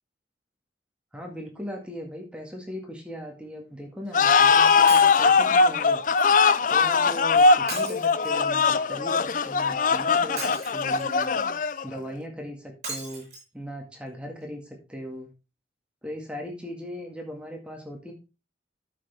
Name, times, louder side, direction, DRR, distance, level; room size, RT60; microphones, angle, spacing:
voice 1, 1.1-6.0 6.7-11.3 11.8-13.3 13.5-15.3 16.0-18.1, equal, 5° right, 1 dB, 1.8 m, -38 dB
sound 1, 4.1-12.0, left 5 dB, 45° left, 0.4 m, -21 dB
Shatter, 4.9-5.3 7.7-8.6 10.4-11.1 12.8-13.4 14.1-14.2 14.4-14.5, right 3 dB, 40° right, 6.3 m, -37 dB
12.5 x 6.2 x 3.5 m, 0.30 s
head